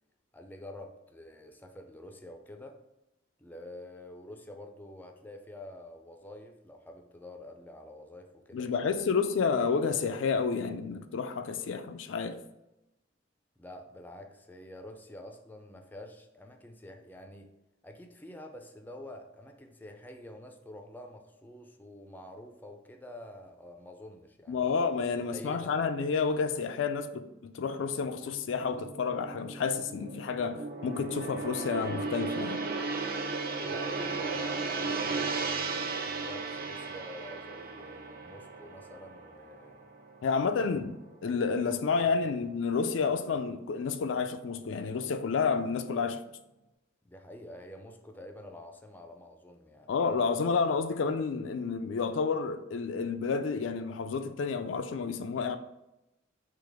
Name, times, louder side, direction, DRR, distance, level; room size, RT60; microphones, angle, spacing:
voice 1, 0.3-2.8 3.4-9.0 13.6-17.5 17.8-24.8 25.3-25.7 33.7-39.8 42.0-42.3 47.0-50.2, left 1 dB, 10° left, 0.4 m, -48 dB
voice 2, 8.5-12.4 24.5-32.6 40.2-41.0 41.2-46.2 49.9-55.6, left 5 dB, 80° left, 0.4 m, -30 dB
Gong, 28.2-40.7 41.0-41.3, right 4 dB, 50° right, 0.5 m, -36 dB
3.8 x 2.9 x 4.8 m
head